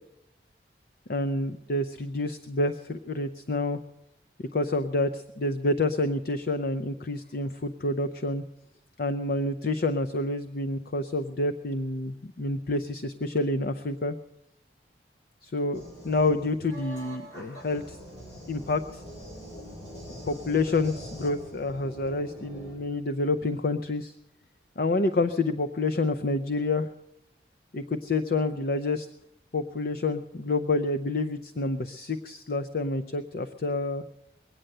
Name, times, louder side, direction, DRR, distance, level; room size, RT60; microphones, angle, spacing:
voice 1, 1.1-3.8 4.5-8.4 9.0-14.2 15.4-18.0 18.5-19.0 20.3-24.1 24.8-26.9 27.7-29.1 29.5-34.0, left 2 dB, 55° left, 9 dB, 0.5 m, -28 dB
sound 1, 15.7-22.8, equal, 90° left, 7.3 m, -43 dB
22.0 x 8.9 x 6.6 m, 0.84 s
head